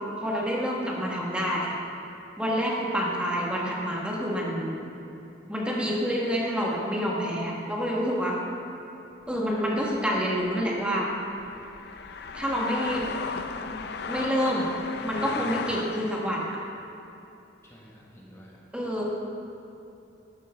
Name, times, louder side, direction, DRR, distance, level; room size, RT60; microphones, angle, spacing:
voice 1, 0.2-1.8 2.4-4.8 5.5-8.4 9.3-11.1 12.3-13.1 13.6-13.7 14.1-14.7 15.0-16.6 18.7-19.0, equal, 5° right, -4 dB, 1.3 m, -27 dB
sound 1, 9.2-16.4, left 5 dB, 60° left, 0.4 m, -37 dB
voice 2, 15.2-15.5 17.6-18.9, equal, 15° left, -4 dB, 1.2 m, -50 dB
12.5 x 9.3 x 3.4 m, 2.8 s
head